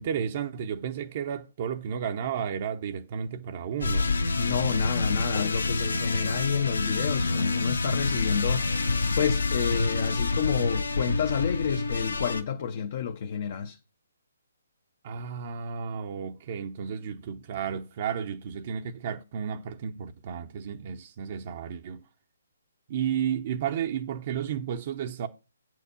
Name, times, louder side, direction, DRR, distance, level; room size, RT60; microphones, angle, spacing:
voice 1, 0.0-4.1 15.0-22.0 22.9-25.3, right 8 dB, 45° right, 0.8 m, -32 dB
sound 1, 3.8-12.4, left 3 dB, 80° left, 1.1 m, -27 dB
voice 2, 4.4-8.8 9.2-13.8, left 7 dB, 45° left, 0.8 m, -29 dB
8.2 x 4.6 x 7.0 m
hypercardioid pair, 145°, 0 cm